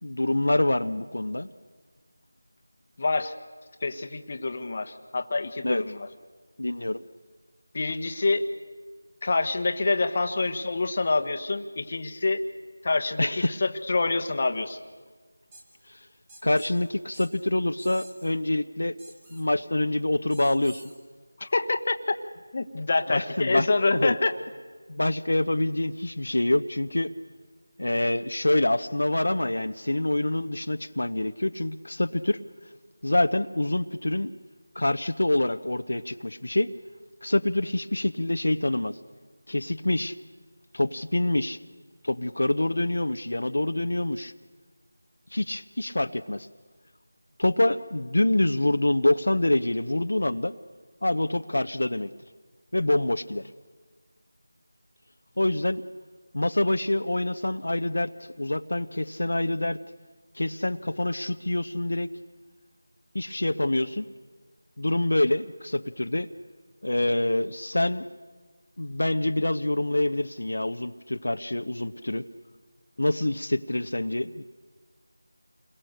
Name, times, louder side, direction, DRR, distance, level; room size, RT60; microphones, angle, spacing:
voice 1, 0.0-1.5 5.6-5.8 6.6-7.0 13.2-13.6 15.9-16.0 16.4-19.0 19.3-20.8 23.1-24.2 24.9-27.1 27.8-32.4 33.0-34.3 34.7-36.7 37.2-39.0 39.5-40.1 40.7-41.6 42.0-44.3 45.3-46.5 47.4-50.5 51.0-52.1 52.7-53.5 55.4-55.8 56.3-59.8 60.3-62.1 63.1-64.1 64.8-66.3 66.8-68.1 68.8-72.3 73.0-74.4, left 1 dB, 75° left, 9 dB, 0.9 m, -26 dB
voice 2, 3.0-3.3 3.8-6.1 7.7-8.5 9.2-12.4 12.8-14.8 21.4-21.9 22.5-24.3, left 3 dB, 35° left, 7 dB, 1.2 m, -26 dB
sound 1, 15.5-15.6 16.3-16.7 17.1-17.3 17.8-18.3 19.0-19.4 20.3-21.0, right 2 dB, 15° right, 2.3 m, -49 dB
28.5 x 22.0 x 6.6 m, 1.5 s
figure-of-eight pair, 175°, 0 cm